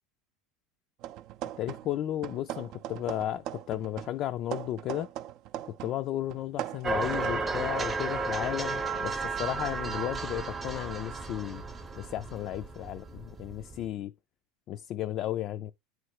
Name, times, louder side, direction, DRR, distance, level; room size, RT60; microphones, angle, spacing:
sound 1, 1.0-2.0 2.2-6.0 6.3-7.5, right 12 dB, 55° right, 0.4 m, -40 dB
voice 1, 1.6-5.1 5.8-11.6 12.0-14.1 14.7-15.7, left 13 dB, 45° left, 0.3 m, -34 dB
sound 2, 6.8-13.9, right 4 dB, 15° right, 0.7 m, -33 dB
9.2 x 3.1 x 4.7 m
supercardioid pair, 135°, 0 cm